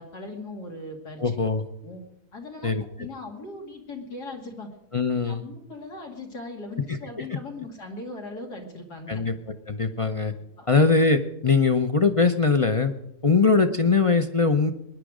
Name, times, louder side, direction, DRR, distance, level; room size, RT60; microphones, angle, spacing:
voice 1, 0.0-1.5 1.8-2.0 2.3-2.7 3.0-4.7 5.2-9.2 10.6-10.7, left 2 dB, 90° left, 2 dB, 3.1 m, -39 dB
voice 2, 1.2-1.6 2.6-2.8 4.9-5.4 9.1-9.3 9.7-10.3 10.7-12.9 13.2-14.7, left 4 dB, 35° left, 8 dB, 0.5 m, -21 dB
21.0 x 10.5 x 5.0 m, 0.87 s
omnidirectional pair, 1.7 m